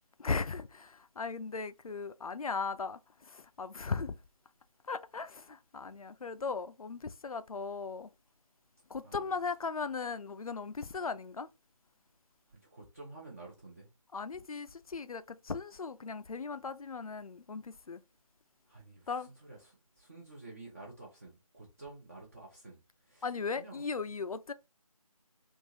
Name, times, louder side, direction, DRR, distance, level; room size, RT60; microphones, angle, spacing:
voice 1, 0.2-4.1 4.9-8.1 8.9-11.5 14.1-18.0 19.1-19.3 23.2-24.5, left 4 dB, 75° left, 0.4 m, -37 dB
voice 2, 12.5-13.9 18.7-23.3 23.6-23.9, right 2 dB, 25° right, 0.7 m, -51 dB
3.6 x 2.4 x 2.8 m
figure-of-eight pair, 160°, 19 cm